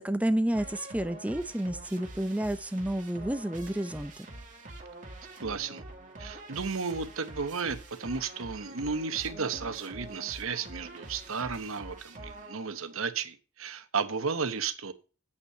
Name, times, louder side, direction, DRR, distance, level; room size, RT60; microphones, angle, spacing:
voice 1, 0.0-4.1, right 1 dB, 5° right, 0.6 m, -30 dB
sound 1, 0.5-12.9, right 2 dB, 35° right, 1.9 m, -46 dB
voice 2, 5.4-5.8 6.2-14.9, right 5 dB, 70° right, 1.0 m, -33 dB
8.2 x 5.6 x 6.7 m
head